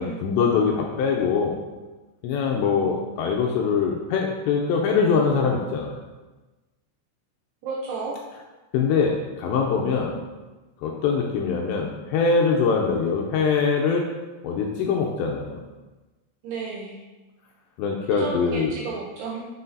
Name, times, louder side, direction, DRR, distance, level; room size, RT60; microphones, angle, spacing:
voice 1, 0.0-1.6 2.2-6.0 8.7-10.1 10.8-14.1 14.4-15.6 17.8-18.7, left 5 dB, 80° left, 0 dB, 2.6 m, -23 dB
voice 2, 7.6-8.2 16.4-17.0 18.1-19.5, right 4 dB, 85° right, -3 dB, 2.4 m, -32 dB
7.7 x 7.0 x 2.7 m, 1.2 s
omnidirectional pair, 5.5 m